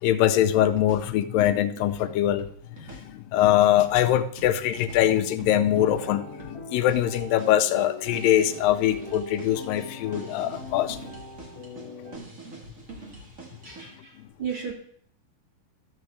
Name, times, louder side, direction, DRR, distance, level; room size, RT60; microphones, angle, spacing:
voice 1, 0.0-11.0, left 12 dB, 85° left, 10 dB, 2.3 m, -23 dB
sound 1, 0.6-13.9, right 2 dB, 35° right, 1.3 m, -45 dB
sound 2, 5.7-12.2, left 3 dB, 25° left, 2.8 m, -42 dB
voice 2, 13.6-14.7, right 7 dB, 55° right, -1 dB, 1.6 m, -35 dB
14.0 x 7.1 x 3.3 m, 0.62 s
omnidirectional pair, 4.0 m